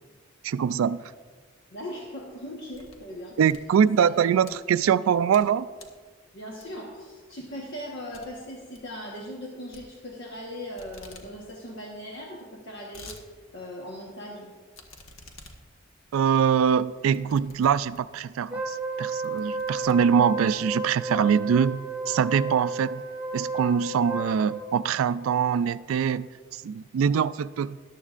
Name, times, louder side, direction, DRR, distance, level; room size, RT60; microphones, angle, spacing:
voice 1, 0.4-1.0 3.4-5.7 16.1-23.0 23.3-26.3 26.6-27.8, right 7 dB, 85° right, 0.3 m, -23 dB
voice 2, 1.7-3.4 4.0-4.3 6.3-13.1 13.5-14.5, equal, 60° left, 1.2 m, -39 dB
sound 1, 2.2-3.1 3.4-4.5 5.0-5.5 5.8-6.0 6.6-7.0 7.3-7.4 7.7-7.8 8.1-8.3 8.6-8.9 9.7-10.5 10.8-11.3 11.6-11.7 11.9-12.0 12.5-13.2 13.7-13.8 14.7-18.2 18.8-18.9 19.2-20.5, left 3 dB, 80° left, 1.2 m, -49 dB
Wind instrument woodwind instrument, 18.5-24.8, right 3 dB, 10° right, 0.8 m, -32 dB
13.5 x 11.0 x 2.5 m
head